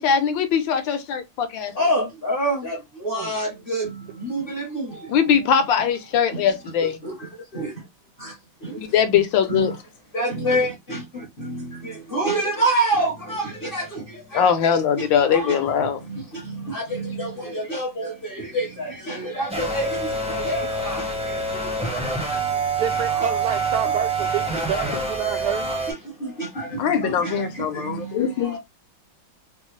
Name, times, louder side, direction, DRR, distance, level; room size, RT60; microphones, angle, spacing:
voice 1, 0.0-1.7 5.1-7.0 8.8-9.8 12.3-12.4 14.3-16.0 26.8-28.6, left 8 dB, 75° left, 1.4 m, -21 dB
voice 2, 1.7-5.4 6.3-6.5 7.0-7.7 8.2-9.2 9.5-9.7 10.1-22.6 23.2-23.3 25.7-28.6, right 1 dB, 40° left, 0.8 m, -28 dB
sound 1, 19.5-25.9, right 3 dB, 5° right, 0.5 m, -26 dB
voice 3, 22.8-25.7, right 8 dB, 70° right, 1.1 m, -28 dB
4.1 x 2.1 x 3.0 m
omnidirectional pair, 2.2 m